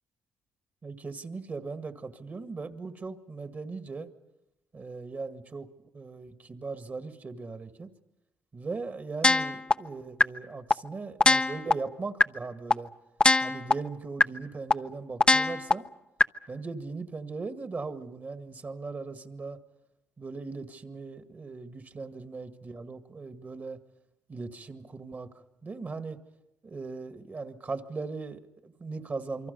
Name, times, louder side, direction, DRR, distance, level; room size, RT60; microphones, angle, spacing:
voice 1, 0.8-4.1 4.7-5.7 5.9-7.9 8.5-12.9 13.4-15.8 16.5-19.6 20.2-23.8 24.3-25.3 25.6-26.2 26.6-29.5, right 4 dB, 35° right, 8 dB, 1.9 m, -39 dB
sound 1, 9.2-9.7 10.2-10.3 10.7-10.8 11.2-11.7 12.2-12.3 12.7-12.8 13.2-13.7 14.2-14.3 14.7-14.8 15.2-15.7 16.2-16.3, left 3 dB, 15° left, 0.7 m, -20 dB
27.5 x 24.0 x 5.5 m, 0.95 s
supercardioid pair, 80°, 6 cm